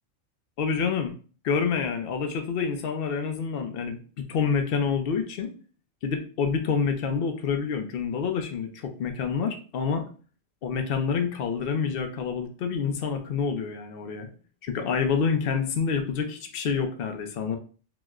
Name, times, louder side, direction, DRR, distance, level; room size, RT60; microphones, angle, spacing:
voice 1, 0.6-1.1 1.4-5.5 6.0-10.1 10.6-14.3 14.6-17.6, left 6 dB, 60° left, 6 dB, 0.6 m, -27 dB
2.9 x 2.1 x 3.5 m, 0.39 s
omnidirectional pair, 1.3 m